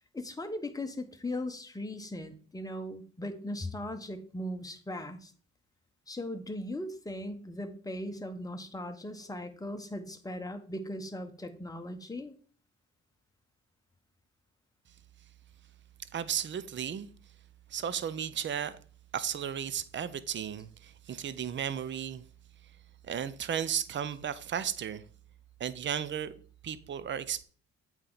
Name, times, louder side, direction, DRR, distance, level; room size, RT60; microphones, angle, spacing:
voice 1, 0.1-5.3 6.1-12.3, left 1 dB, 10° left, 1.1 m, -38 dB
voice 2, 16.1-17.1 17.7-18.8 19.1-22.2 23.1-25.0 25.6-26.3 26.6-27.4, right 9 dB, 40° right, 0.6 m, -34 dB
8.2 x 4.5 x 4.0 m
cardioid pair, 90°, 30 cm